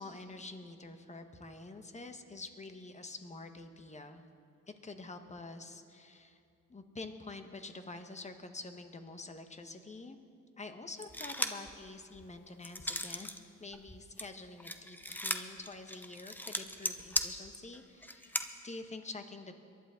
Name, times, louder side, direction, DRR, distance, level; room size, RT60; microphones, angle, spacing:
voice 1, 0.0-4.3 4.7-6.4 6.7-10.2 10.6-13.3 13.6-19.5, left 3 dB, 25° left, 7 dB, 1.3 m, -47 dB
sound 1, 11.0-11.7 12.1-13.4 13.7-18.4, left 1 dB, 5° left, 0.8 m, -37 dB
23.0 x 11.5 x 3.8 m, 2.5 s
cardioid pair, 90°, 30 cm